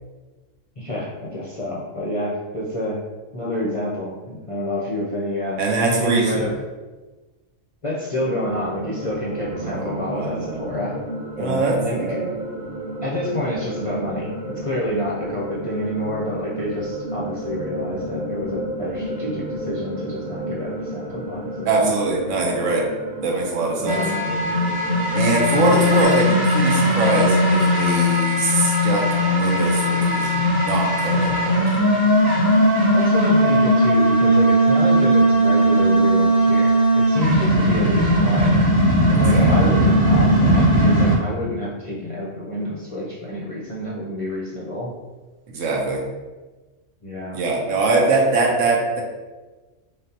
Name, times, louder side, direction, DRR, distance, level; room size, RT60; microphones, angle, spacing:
voice 1, 0.8-3.0 3.3-6.5 7.8-11.0 11.4-12.2 13.0-22.0 23.8-24.2 32.9-38.7 39.1-44.9 47.0-47.4, left 1 dB, 40° left, -5 dB, 0.5 m, -28 dB
voice 2, 5.6-6.5 9.5-10.9 11.4-12.3 21.6-22.9 23.2-24.0 25.1-31.8 39.3-39.7 45.5-46.0 47.3-49.0, right 3 dB, 85° right, -1 dB, 1.1 m, -22 dB
sound 1, 8.2-26.0, right 1 dB, 50° right, 0.7 m, -32 dB
sound 2, 23.9-41.2, equal, 20° right, 0.9 m, -18 dB
4.0 x 3.4 x 2.7 m, 1.2 s
omnidirectional pair, 1.3 m